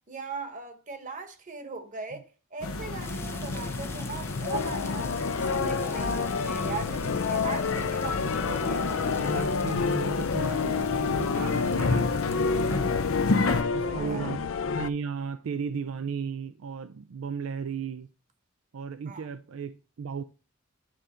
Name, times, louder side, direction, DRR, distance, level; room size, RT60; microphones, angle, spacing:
voice 1, 0.1-5.1 5.4-9.3 13.5-14.3 19.1-19.2, right 4 dB, 40° right, 1.2 m, -39 dB
sound 1, 2.6-13.6, left 3 dB, 85° left, 0.9 m, -32 dB
sound 2, 3.0-12.8, left 3 dB, 10° left, 0.5 m, -46 dB
sound 3, 4.5-14.9, left 5 dB, 70° left, 0.5 m, -29 dB
voice 2, 9.2-12.4 13.7-14.5 14.7-18.1 18.7-20.2, right 6 dB, 75° right, 0.4 m, -35 dB
8.8 x 3.8 x 4.3 m
head